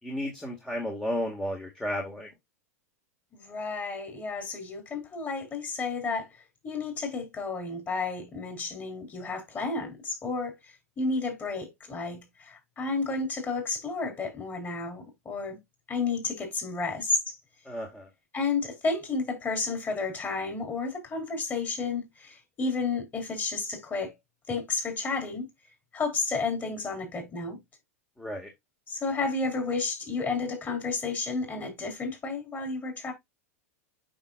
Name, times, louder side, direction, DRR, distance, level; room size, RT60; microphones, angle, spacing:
voice 1, 0.0-2.3 17.7-18.1 28.2-28.5, equal, 5° left, 2.0 m, -33 dB
voice 2, 3.3-6.3 6.6-10.6 11.0-15.6 15.9-17.4 18.3-24.1 24.5-25.5 25.9-27.6 28.9-33.1, left 4 dB, 25° left, 4.3 m, -31 dB
8.7 x 6.0 x 2.5 m
hypercardioid pair, 100°, 8 cm